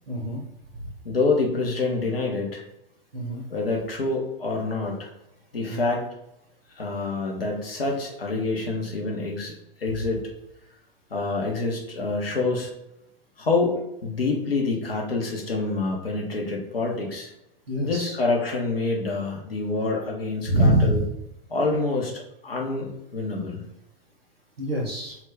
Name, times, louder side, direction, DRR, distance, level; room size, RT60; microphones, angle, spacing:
voice 1, 0.1-0.4 3.1-3.4 5.7-5.9 17.7-18.2 20.5-21.1 24.6-25.2, right 1 dB, 90° right, -1 dB, 0.6 m, -24 dB
voice 2, 1.0-2.6 3.5-5.1 5.5-6.0 6.7-10.3 11.1-12.7 13.4-17.3 17.8-21.0 21.5-23.6, left 3 dB, 80° left, -1 dB, 0.6 m, -27 dB
2.2 x 2.1 x 3.4 m, 0.83 s
figure-of-eight pair, 100°, 29 cm